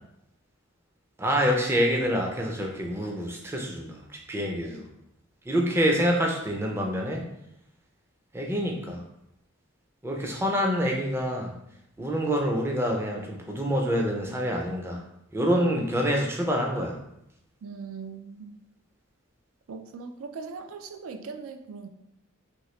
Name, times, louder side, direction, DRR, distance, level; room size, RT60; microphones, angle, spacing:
voice 1, 1.2-4.0 4.3-4.8 5.5-7.2 8.3-9.0 10.0-11.5 12.0-15.0 15.3-17.0, equal, 10° right, 0 dB, 0.4 m, -26 dB
voice 2, 17.6-18.5 19.7-21.9, right 5 dB, 80° right, 6 dB, 0.4 m, -40 dB
2.9 x 2.7 x 3.1 m, 0.81 s
head